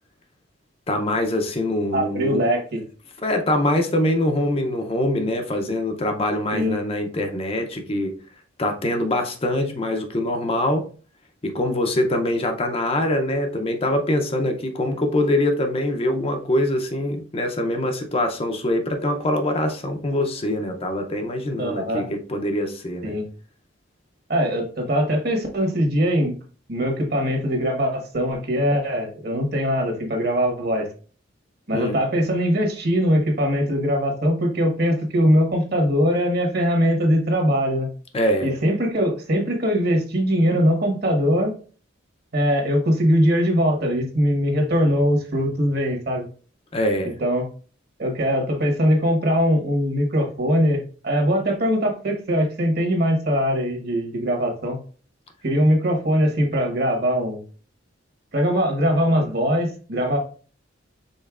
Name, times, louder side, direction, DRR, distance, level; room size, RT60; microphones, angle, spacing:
voice 1, 0.9-2.4 3.2-8.2 8.6-10.9 11.4-23.1 31.7-32.0 38.1-38.6 46.7-47.2, left 1 dB, 30° left, 0.5 m, -24 dB
voice 2, 1.9-2.8 6.5-6.8 21.6-22.1 23.0-23.2 24.3-26.3 26.7-30.9 31.7-37.9 38.4-41.5 42.3-46.3 47.2-47.5 48.0-54.8 55.4-57.4 58.3-60.2, equal, 50° right, 1.3 m, -21 dB
5.3 x 3.8 x 2.4 m
head